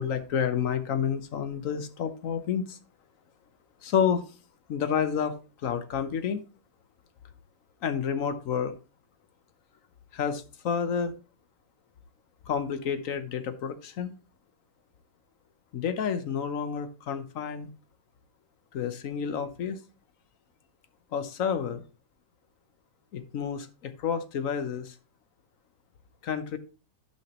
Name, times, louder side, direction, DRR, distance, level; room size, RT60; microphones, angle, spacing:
voice 1, 0.0-2.8 3.8-4.3 4.7-5.4 5.6-6.4 7.8-8.8 10.1-11.1 12.5-14.1 15.7-17.7 18.7-19.8 21.1-21.8 23.1-24.9 26.2-26.6, left 7 dB, 55° left, 1.1 m, -29 dB
11.0 x 5.9 x 2.9 m
omnidirectional pair, 2.0 m